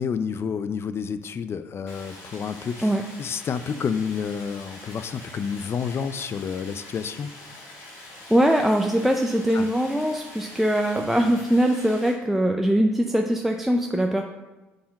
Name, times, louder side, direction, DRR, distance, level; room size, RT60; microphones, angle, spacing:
voice 1, 0.0-2.9 3.2-7.3 9.5-9.7, left 6 dB, 45° left, 12 dB, 0.5 m, -29 dB
Stream, 1.9-12.1, left 2 dB, 85° left, 2.3 m, -44 dB
voice 2, 8.1-14.2, right 1 dB, 5° right, 3 dB, 0.6 m, -22 dB
6.5 x 5.6 x 5.8 m, 1.1 s
hypercardioid pair, 65°, 6 cm